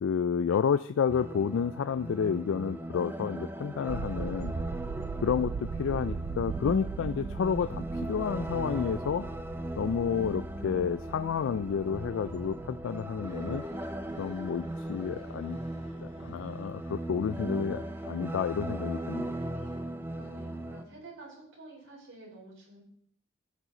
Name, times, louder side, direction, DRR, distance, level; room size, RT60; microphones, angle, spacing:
voice 1, 0.0-4.5 5.2-9.3 9.8-13.6 14.2-15.6 16.0-19.4, left 7 dB, 65° left, 13 dB, 0.3 m, -30 dB
sound 1, 1.1-20.8, right 1 dB, 10° right, 0.4 m, -38 dB
sound 2, 3.9-15.7 16.0-16.4 16.7-16.9, right 6 dB, 85° right, 0.3 m, -40 dB
sound 3, 13.2-19.8, left 1 dB, 30° left, 1.5 m, -59 dB
voice 2, 20.1-22.8, right 2 dB, 70° right, -4 dB, 4.7 m, -51 dB
16.0 x 6.2 x 3.8 m, 0.64 s
head